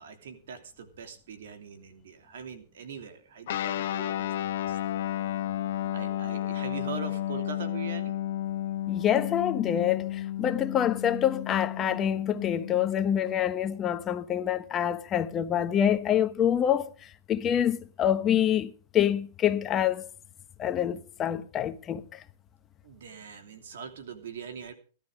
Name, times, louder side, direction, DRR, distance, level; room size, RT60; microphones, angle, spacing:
voice 1, 0.0-4.3 4.7-4.8 5.9-8.1 22.8-24.7, right 6 dB, 75° right, 3.0 m, -42 dB
Guitar, 3.5-13.4, left 12 dB, 65° left, 1.3 m, -32 dB
voice 2, 8.9-20.1 20.6-22.2, left 10 dB, 25° left, 1.1 m, -26 dB
17.0 x 12.0 x 5.1 m
hypercardioid pair, 140°, 0 cm